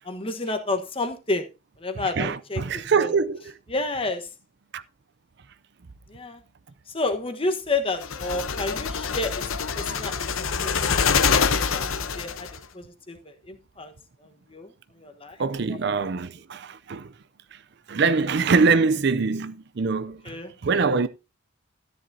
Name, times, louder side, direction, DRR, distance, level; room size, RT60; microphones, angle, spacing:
voice 1, 0.0-1.4 1.8-3.1 3.7-4.3 6.1-6.4 6.9-9.5 9.8-10.3 10.6-10.8 11.3-11.4 11.7-12.5 12.7-13.2 13.5-13.9 14.5-14.7 15.0-15.4 20.3-20.5, left 2 dB, 25° left, 1.2 m, -30 dB
voice 2, 2.0-3.6 4.7-4.8 15.4-17.1 17.9-21.1, right 4 dB, 55° right, 0.5 m, -24 dB
sound 1, 8.0-12.6, left 6 dB, 80° left, 0.9 m, -25 dB
13.5 x 10.0 x 2.7 m
head